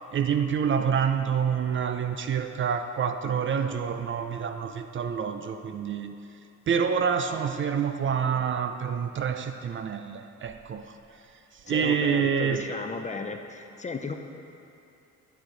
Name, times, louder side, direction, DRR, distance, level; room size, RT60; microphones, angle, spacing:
voice 1, 0.1-6.2 6.7-11.0 11.7-12.7, right 7 dB, 40° right, 8 dB, 0.4 m, -27 dB
voice 2, 11.7-14.1, left 4 dB, 25° left, 5 dB, 0.5 m, -35 dB
9.3 x 6.2 x 3.9 m, 2.7 s
cardioid pair, 90°, 30 cm